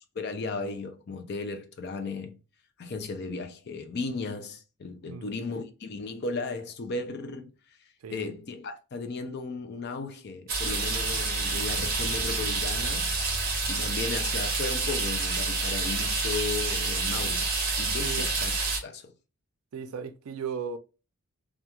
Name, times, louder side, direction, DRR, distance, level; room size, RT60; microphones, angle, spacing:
voice 1, 0.1-2.4 2.8-13.1 13.7-17.5 17.8-18.5 18.8-19.1, left 4 dB, 50° left, 0.4 m, -35 dB
sound 1, 10.5-18.8, right 3 dB, 40° right, 0.8 m, -28 dB
voice 2, 19.7-20.8, right 6 dB, 70° right, 0.4 m, -36 dB
2.3 x 2.3 x 2.8 m
head